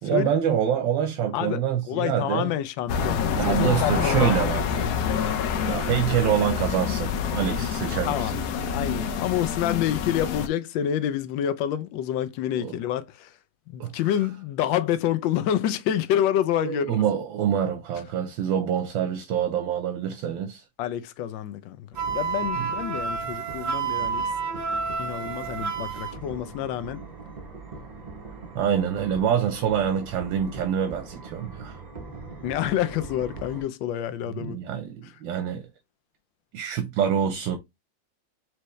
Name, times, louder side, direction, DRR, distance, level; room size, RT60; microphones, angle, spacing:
voice 1, 0.0-2.5 3.3-4.9 5.6-8.4 12.6-12.8 13.8-13.9 16.6-20.6 22.6-22.7 28.5-31.8 34.3-35.7 36.5-37.6, right 9 dB, 85° right, 1.4 m, -26 dB
voice 2, 1.3-4.3 4.8-4.9 8.1-13.3 13.7-17.0 20.8-21.9 22.1-24.2 25.0-27.0 32.4-34.6, left 11 dB, 85° left, 1.3 m, -28 dB
sound 1, 2.9-10.5, left 7 dB, 70° left, 1.1 m, -27 dB
sound 2, 21.9-33.6, right 3 dB, 50° right, 0.5 m, -41 dB
Wind instrument woodwind instrument, 22.0-26.2, right 5 dB, 30° right, 1.1 m, -29 dB
4.5 x 3.2 x 3.1 m
omnidirectional pair, 2.0 m